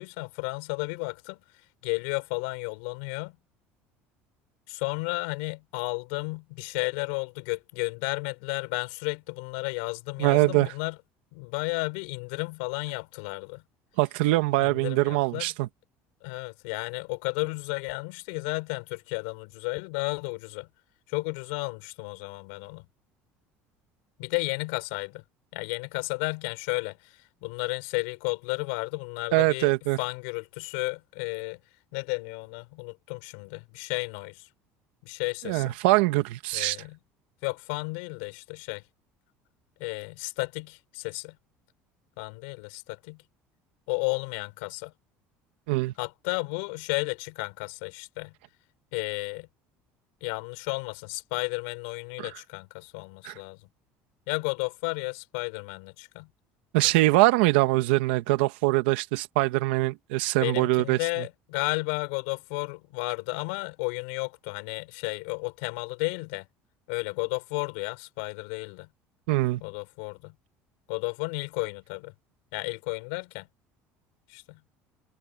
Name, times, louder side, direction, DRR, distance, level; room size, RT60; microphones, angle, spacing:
voice 1, 0.0-1.4 1.8-3.4 4.7-11.0 11.3-13.6 14.6-15.5 16.2-20.7 21.1-22.9 24.2-25.2 25.5-29.7 30.0-31.6 31.9-34.5 35.0-35.8 36.5-37.0 37.4-38.8 39.8-41.4 42.2-43.2 43.9-44.9 46.0-48.3 48.9-49.5 50.2-53.6 54.3-56.3 60.4-66.5 66.9-68.9 69.6-70.3 70.9-72.1 72.5-73.5 74.3-74.6, left 30 dB, 85° left, 4.7 m, -33 dB
voice 2, 10.2-10.7 14.0-15.7 29.3-30.0 35.4-36.8 45.7-45.9 52.2-52.3 53.2-53.4 56.7-61.0 69.3-69.6, right 19 dB, 90° right, 1.7 m, -23 dB
supercardioid pair, 115°, 5 cm